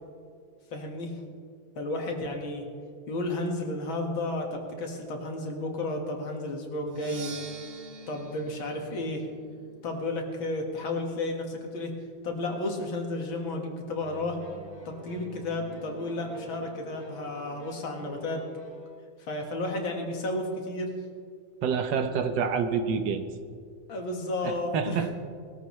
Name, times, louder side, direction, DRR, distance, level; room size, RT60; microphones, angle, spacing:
voice 1, 0.7-1.1 1.8-2.6 3.1-7.3 8.1-9.2 9.8-11.9 12.2-14.4 14.9-18.4 19.2-20.9 23.9-25.1, left 2 dB, 85° left, 2 dB, 2.5 m, -32 dB
Percussion, 6.9-10.7, right 3 dB, 50° right, 1.4 m, -46 dB
sound 1, 14.0-19.0, right 1 dB, 25° right, 2.9 m, -48 dB
voice 2, 21.6-23.2 24.4-25.1, right 6 dB, 70° right, 7 dB, 1.5 m, -27 dB
20.0 x 13.5 x 3.2 m, 2.1 s
omnidirectional pair, 2.1 m